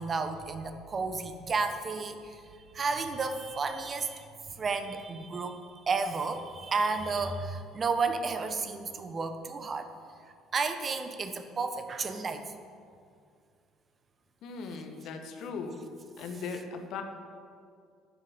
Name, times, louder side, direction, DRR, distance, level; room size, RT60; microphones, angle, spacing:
voice 1, 0.0-2.4 2.7-4.3 4.6-5.6 5.9-9.9 10.5-12.4 16.3-16.4, right 4 dB, 35° right, 8 dB, 1.3 m, -32 dB
voice 2, 14.4-15.8 16.2-17.0, left 5 dB, 55° left, 5 dB, 1.6 m, -38 dB
12.0 x 7.8 x 9.1 m, 2.2 s
figure-of-eight pair, 55°, 0 cm